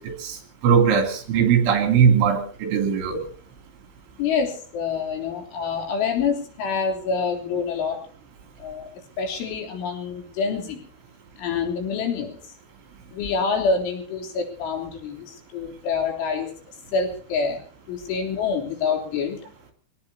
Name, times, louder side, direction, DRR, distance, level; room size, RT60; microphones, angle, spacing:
voice 1, 0.0-3.3, right 7 dB, 70° right, 2 dB, 5.3 m, -20 dB
voice 2, 4.2-8.1 8.6-8.9 9.2-10.8 11.4-12.4 13.1-16.5 16.9-19.4, left 5 dB, 70° left, 2 dB, 5.8 m, -26 dB
26.5 x 18.5 x 2.8 m, 0.43 s
omnidirectional pair, 5.7 m